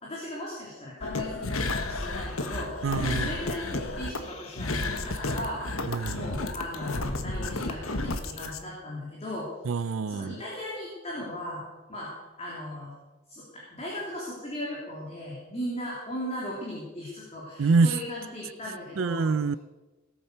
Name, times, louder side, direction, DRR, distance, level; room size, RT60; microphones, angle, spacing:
voice 1, 0.0-9.5 10.1-11.6 11.9-12.9 13.3-19.3, equal, 30° left, -4 dB, 3.2 m, -37 dB
sound 1, 1.0-8.6, left 2 dB, 70° left, 1.3 m, -32 dB
voice 2, 2.8-3.3 5.9-6.2 9.6-10.4 17.6-18.0 19.0-19.6, right 4 dB, 65° right, 17 dB, 0.4 m, -25 dB
18.0 x 8.8 x 6.7 m, 1.1 s
head